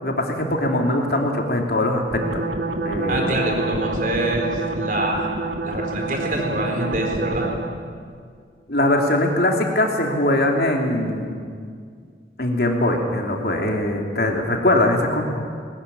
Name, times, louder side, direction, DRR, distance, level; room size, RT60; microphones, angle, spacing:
voice 1, 0.0-2.4 2.8-3.3 8.7-11.3 12.4-15.2, left 1 dB, 55° left, 1 dB, 3.0 m, -21 dB
sound 1, 2.1-7.9, right 2 dB, 85° right, 2.1 m, -27 dB
voice 2, 3.1-5.3 5.6-7.5, right 1 dB, 45° right, 2 dB, 4.3 m, -25 dB
19.5 x 19.5 x 10.0 m, 2.1 s
head